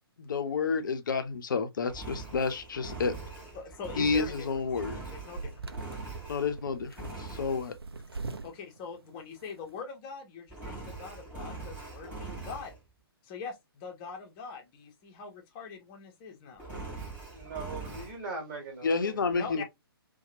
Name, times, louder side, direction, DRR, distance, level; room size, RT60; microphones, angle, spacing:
voice 1, 0.2-3.1 4.0-5.0 6.3-7.8 18.8-19.6, left 4 dB, 50° left, 0.6 m, -30 dB
Engine, 1.9-6.6 7.0-7.7 10.5-12.8 16.6-18.2, right 3 dB, 10° right, 1.2 m, -42 dB
sound 1, 2.1-9.8, right 3 dB, 75° right, 0.5 m, -44 dB
voice 2, 3.5-4.3 5.1-5.5 8.4-12.7 13.2-16.6 19.3-19.6, left 5 dB, 25° left, 0.8 m, -42 dB
voice 3, 17.3-19.6, right 3 dB, 40° right, 1.5 m, -41 dB
2.8 x 2.2 x 2.6 m
figure-of-eight pair, 125°, 13 cm